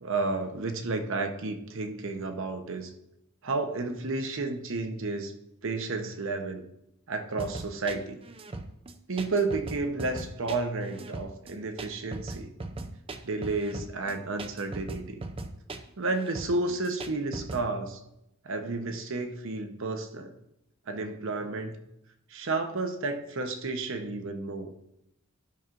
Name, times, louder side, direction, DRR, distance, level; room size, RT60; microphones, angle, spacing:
voice 1, 0.0-2.9 3.4-5.3 5.6-6.6 7.1-8.2 9.1-12.5 13.2-15.2 16.0-18.0 18.4-20.3 20.9-21.8 22.3-24.7, right 3 dB, 65° right, 6 dB, 0.8 m, -31 dB
sound 1, 7.4-17.7, right 2 dB, 25° right, 0.5 m, -39 dB
12.0 x 6.0 x 2.5 m, 0.85 s
head